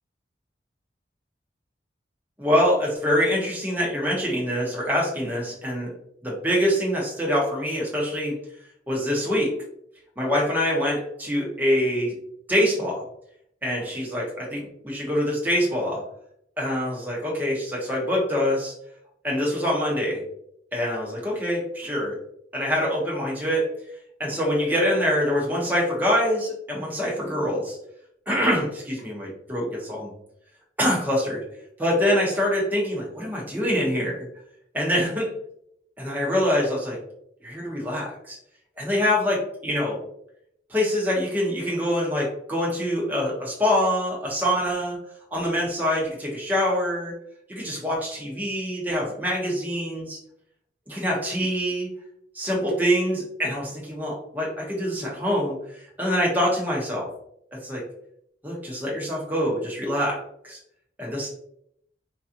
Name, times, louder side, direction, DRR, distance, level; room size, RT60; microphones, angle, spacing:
voice 1, 2.4-5.9 6.2-8.3 8.9-9.5 10.2-12.1 12.5-13.0 13.6-16.0 16.6-18.7 19.2-20.2 20.7-22.2 22.5-23.7 24.2-27.8 28.3-30.1 30.8-31.4 31.8-34.3 34.7-35.3 36.0-37.0 37.4-38.4 38.8-40.0 40.7-45.0 45.3-47.1 47.5-50.2 50.9-51.9 52.3-55.6 56.0-57.1 57.5-57.8 58.4-60.6 61.0-61.3, equal, 10° right, -3 dB, 1.1 m, -25 dB
4.7 x 2.5 x 2.9 m, 0.71 s
head